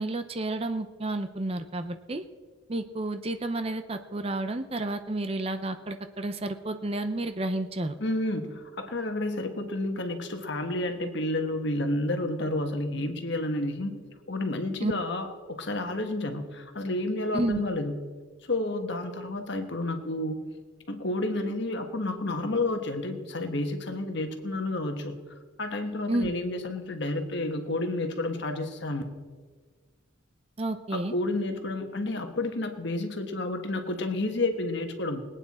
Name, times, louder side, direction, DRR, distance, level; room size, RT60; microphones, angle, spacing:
voice 1, 0.0-2.2 2.7-8.0 14.8-14.9 17.3-17.7 26.1-26.3 30.6-31.1, right 2 dB, 30° right, 8 dB, 0.6 m, -31 dB
voice 2, 8.0-14.0 14.3-17.9 18.4-20.4 20.9-25.2 25.6-29.0 30.9-35.2, left 2 dB, 55° left, 6 dB, 1.3 m, -30 dB
21.0 x 9.1 x 4.2 m, 1.5 s
head